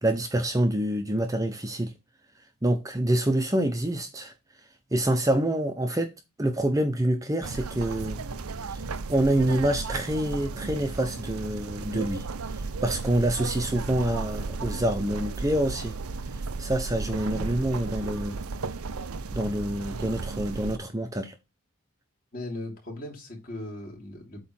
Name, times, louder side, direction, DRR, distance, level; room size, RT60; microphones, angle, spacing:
voice 1, 0.0-1.9 2.6-4.3 4.9-6.1 6.4-8.2 8.5-8.8 9.1-12.3 12.6-16.0 16.6-18.4 19.3-21.3, right 1 dB, 15° right, 0.7 m, -26 dB
sound 1, 7.4-20.8, right 4 dB, 90° right, 0.7 m, -34 dB
voice 2, 22.3-24.4, left 1 dB, 40° left, 3.1 m, -38 dB
8.3 x 3.2 x 6.0 m
head